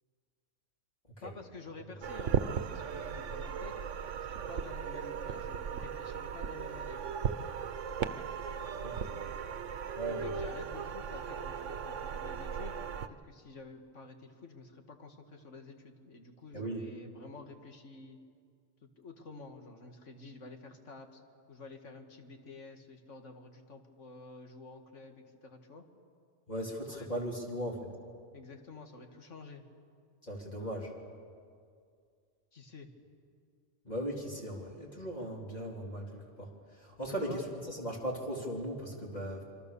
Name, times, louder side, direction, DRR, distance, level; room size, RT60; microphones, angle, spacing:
voice 1, 1.2-7.0 9.1-9.3 10.0-12.8 13.2-18.2 18.8-21.2 21.5-25.8 26.9-27.1 28.3-29.6 32.5-32.9 37.1-37.4, left 3 dB, 85° left, 5 dB, 2.2 m, -50 dB
sound 1, 2.0-13.1, right 7 dB, 85° right, 1.2 m, -37 dB
voice 2, 8.8-9.1 9.9-10.3 16.5-16.8 26.5-27.9 30.2-30.9 33.8-39.4, right 1 dB, 35° left, -2 dB, 3.9 m, -38 dB
26.5 x 24.5 x 6.9 m, 2.2 s
omnidirectional pair, 1.2 m